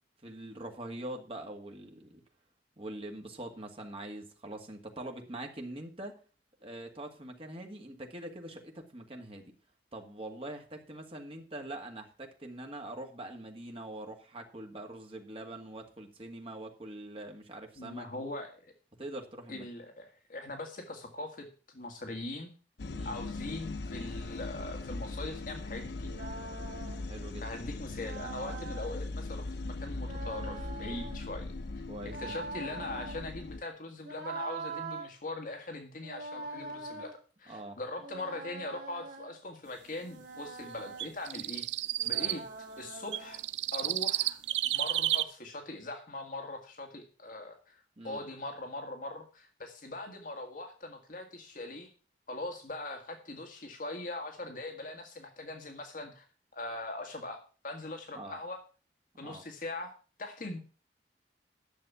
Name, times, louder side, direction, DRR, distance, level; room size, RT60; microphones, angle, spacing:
voice 1, 0.2-2.2 2.8-6.1 6.6-9.5 9.9-18.3 19.0-19.7 22.9-23.2 27.0-27.5 31.9-32.1 37.5-37.8 42.2-42.4 48.0-48.2 58.1-58.4 59.2-59.4, right 1 dB, 35° right, 3 dB, 2.0 m, -43 dB
voice 2, 17.8-18.7 19.5-22.5 23.0-26.1 27.4-31.5 32.2-41.6 42.0-42.4 42.8-43.4 43.7-44.4 44.6-51.9 52.3-56.2 56.5-58.6 59.2-60.6, left 2 dB, 50° left, 4 dB, 1.7 m, -41 dB
sound 1, 22.8-33.6, left 2 dB, 65° left, 0.6 m, -40 dB
sound 2, 26.0-27.1 28.0-29.0 30.0-31.2 32.0-33.2 34.0-35.1 36.0-37.1 38.0-39.4 40.0-41.1 42.0-43.4, right 3 dB, 55° right, 2.2 m, -43 dB
sound 3, 41.0-42.4 43.1-45.2, right 14 dB, 85° right, 0.5 m, -31 dB
11.0 x 6.8 x 7.0 m, 0.37 s
head